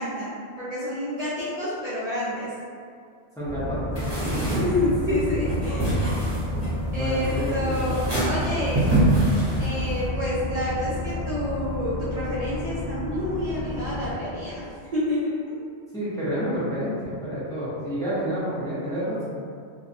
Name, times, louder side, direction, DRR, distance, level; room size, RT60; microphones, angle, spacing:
voice 1, 0.0-2.5 4.5-6.1 6.9-9.0 9.6-14.6 14.9-15.6, left 1 dB, 50° right, -12 dB, 0.5 m, -28 dB
voice 2, 3.4-4.4 6.9-7.8 15.9-19.2, equal, 5° left, -12 dB, 0.6 m, -29 dB
sound 1, 3.5-14.1, left 1 dB, 35° left, 0.9 m, -31 dB
sound 2, 3.9-10.1, right 1 dB, 25° right, 0.8 m, -26 dB
2.6 x 2.1 x 2.5 m, 2.2 s
omnidirectional pair, 1.2 m